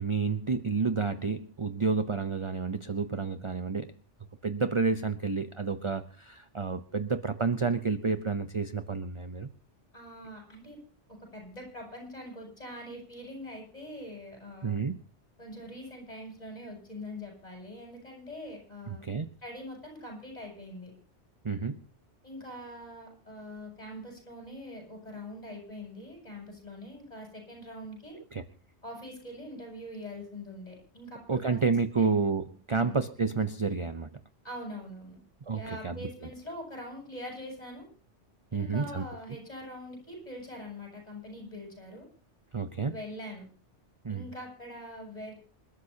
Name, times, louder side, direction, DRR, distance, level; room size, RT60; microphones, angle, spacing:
voice 1, 0.0-3.9 4.4-9.5 14.6-15.0 18.9-19.3 21.4-21.8 28.3-28.4 31.3-34.1 35.5-36.1 38.5-39.0 42.5-42.9 44.0-44.3, right 4 dB, 30° right, 10 dB, 0.7 m, -30 dB
voice 2, 9.9-10.8 11.3-14.8 15.4-19.0 19.4-20.9 22.2-28.1 28.8-31.6 32.0-32.1 32.7-33.0 34.4-35.2 35.5-37.9 38.5-42.1 42.9-43.4 44.1-45.3, left 1 dB, 35° left, 0 dB, 8.0 m, -43 dB
27.5 x 13.0 x 2.8 m, 0.39 s
omnidirectional pair, 1.2 m